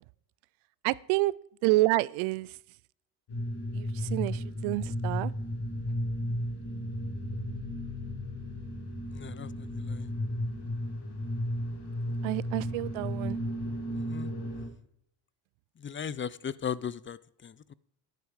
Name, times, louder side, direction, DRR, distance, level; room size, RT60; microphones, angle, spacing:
voice 1, 0.8-1.4 1.6-2.6 3.7-5.3 12.2-13.4, right 20 dB, 85° right, 0.6 m, -28 dB
sound 1, 3.3-14.7, equal, 55° left, 4.4 m, -34 dB
voice 2, 9.1-10.1 13.9-14.3 15.8-17.7, left 7 dB, 25° left, 0.5 m, -37 dB
12.5 x 10.5 x 4.8 m
supercardioid pair, 85°, 48 cm